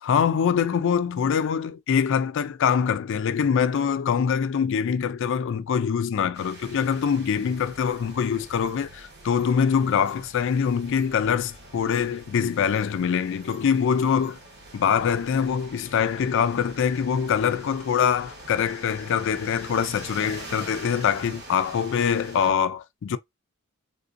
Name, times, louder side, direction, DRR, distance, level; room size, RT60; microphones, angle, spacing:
voice 1, 0.0-14.4 14.7-23.2, left 7 dB, 60° left, 0.4 m, -24 dB
sound 1, 6.3-22.5, right 2 dB, 50° right, 1.0 m, -44 dB
3.6 x 2.5 x 2.5 m
head